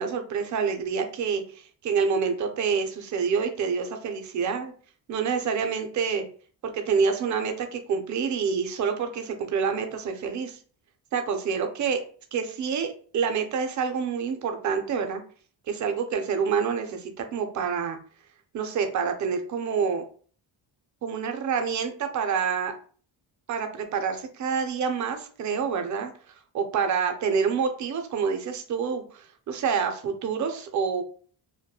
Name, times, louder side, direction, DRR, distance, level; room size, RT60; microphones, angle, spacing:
voice 1, 0.0-4.7 5.1-6.2 6.6-10.6 11.1-12.0 12.3-12.9 13.1-15.2 15.7-18.0 18.5-20.0 21.0-22.7 23.5-26.1 26.5-31.0, right 6 dB, 40° right, 6 dB, 0.4 m, -27 dB
2.8 x 2.2 x 2.2 m, 0.43 s
cardioid pair, 125°, 46 cm